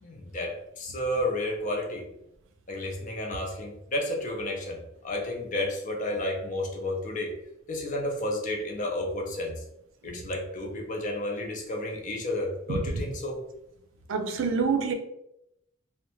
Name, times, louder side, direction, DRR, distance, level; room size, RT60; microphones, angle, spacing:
voice 1, 0.0-2.1 2.7-7.3 7.7-9.6 10.0-13.4, left 1 dB, 40° left, 0.5 m, -31 dB
voice 2, 14.1-14.9, right 5 dB, 70° right, 0.4 m, -26 dB
2.5 x 2.1 x 3.0 m
head